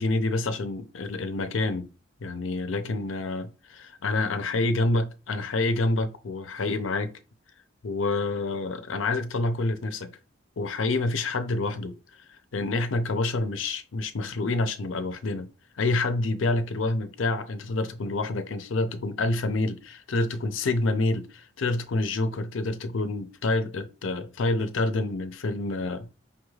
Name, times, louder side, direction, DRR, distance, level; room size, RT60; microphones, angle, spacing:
voice 1, 0.0-1.9 2.2-7.1 7.8-10.1 10.6-12.0 12.5-15.5 15.8-26.1, left 2 dB, 80° left, 0.6 m, -27 dB
5.6 x 2.4 x 3.1 m
head